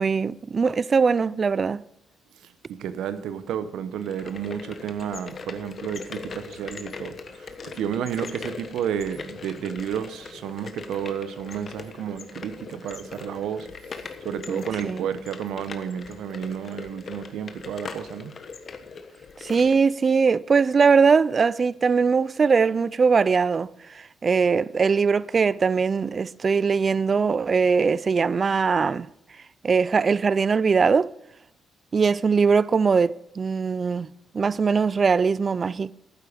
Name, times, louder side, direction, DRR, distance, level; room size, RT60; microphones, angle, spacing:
voice 1, 0.0-1.8 14.5-15.1 19.4-29.1 29.6-31.1 31.9-34.1 34.3-35.9, right 5 dB, 40° right, 0.3 m, -21 dB
voice 2, 2.4-13.7 14.0-18.3, right 8 dB, 80° right, 0.9 m, -32 dB
sound 1, 3.9-19.8, left 5 dB, 45° left, 1.3 m, -40 dB
12.0 x 9.3 x 5.1 m
cardioid pair, 90°, 0 cm